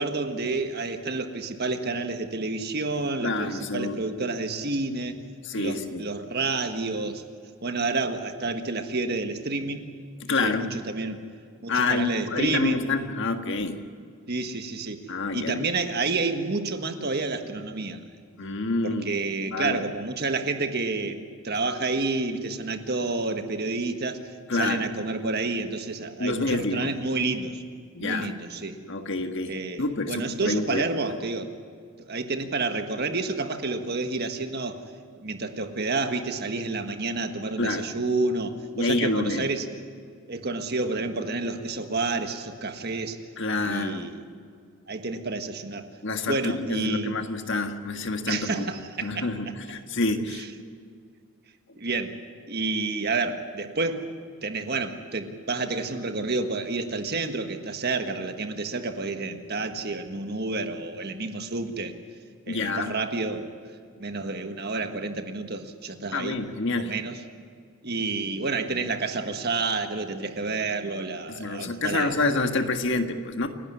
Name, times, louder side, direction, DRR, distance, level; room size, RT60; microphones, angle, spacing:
voice 1, 0.0-5.2 5.5-7.2 7.6-9.8 10.3-11.2 11.6-12.9 14.3-15.0 15.3-18.1 18.8-24.2 24.5-27.6 28.0-28.8 29.5-31.5 32.1-34.8 35.2-39.7 40.3-43.2 43.6-44.2 44.9-45.9 46.2-47.2 48.3-49.3 50.4-50.5 51.8-52.2 52.5-54.1 54.4-61.9 62.5-63.5 64.0-66.4 66.8-67.2 67.8-72.1, right 3 dB, 45° right, 7 dB, 1.6 m, -29 dB
voice 2, 3.2-4.0 5.4-6.0 10.2-10.7 11.7-13.8 15.1-15.7 18.4-19.1 19.5-19.8 24.5-24.8 26.2-26.9 27.9-28.3 28.9-30.9 37.6-37.9 38.8-39.5 43.4-44.1 46.0-48.7 49.0-50.4 62.5-62.9 66.1-66.9 71.3-73.5, left 3 dB, 55° left, 6 dB, 1.7 m, -27 dB
29.0 x 12.0 x 9.8 m, 2.1 s
head